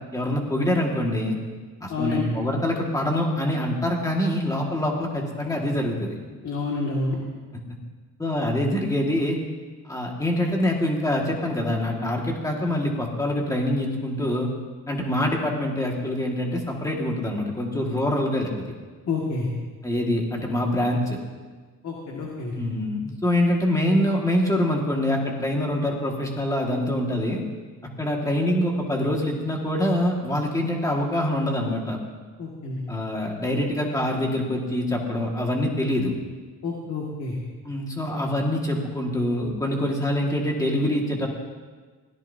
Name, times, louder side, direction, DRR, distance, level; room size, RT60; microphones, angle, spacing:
voice 1, 0.1-1.4 1.8-6.2 8.2-9.4 9.9-14.5 14.9-18.5 19.8-21.2 22.6-27.4 28.0-32.0 32.9-36.1 37.6-41.3, left 1 dB, 10° left, -1 dB, 1.9 m, -25 dB
voice 2, 1.9-2.3 6.4-7.2 19.1-19.5 21.8-22.6 32.4-32.8 36.6-37.4, left 3 dB, 45° left, -2 dB, 2.1 m, -28 dB
24.0 x 17.0 x 2.8 m, 1.4 s
cardioid pair, 180°, 35 cm